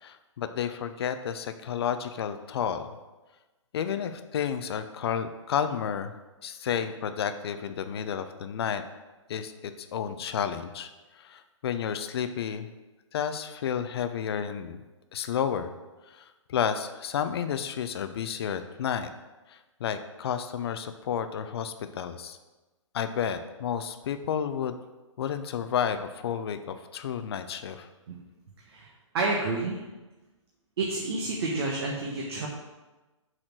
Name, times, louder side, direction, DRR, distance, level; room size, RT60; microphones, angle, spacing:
voice 1, 0.0-2.9 3.7-6.1 6.4-8.8 9.3-10.9 11.2-12.7 13.1-14.8 15.1-15.7 16.1-19.1 19.5-22.4 22.9-24.8 25.2-27.9, left 8 dB, 50° left, 9 dB, 0.7 m, -31 dB
voice 2, 29.1-29.8 30.8-32.5, right 3 dB, 50° right, -1 dB, 1.2 m, -29 dB
6.6 x 4.3 x 6.1 m, 1.1 s
hypercardioid pair, 135°, 16 cm